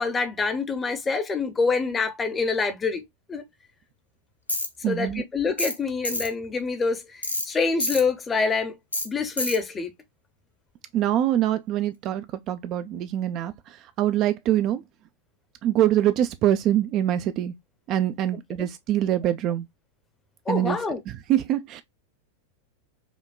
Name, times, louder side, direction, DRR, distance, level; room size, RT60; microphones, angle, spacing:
voice 1, 0.0-3.0 3.3-3.4 4.9-7.0 7.4-8.7 9.0-9.9 20.5-21.0, left 4 dB, 15° left, 0.7 m, -26 dB
Tools, 4.5-4.7 5.6-5.8 6.0-6.3 7.2-7.5 7.8-8.0 8.9-9.1 9.4-9.6, left 1 dB, 85° left, 0.7 m, -27 dB
voice 2, 4.8-5.2 10.9-14.8 15.6-17.5 17.9-19.7 20.5-20.8 21.1-21.8, right 12 dB, 35° right, 0.3 m, -24 dB
5.0 x 2.1 x 2.2 m
figure-of-eight pair, 90°, 0 cm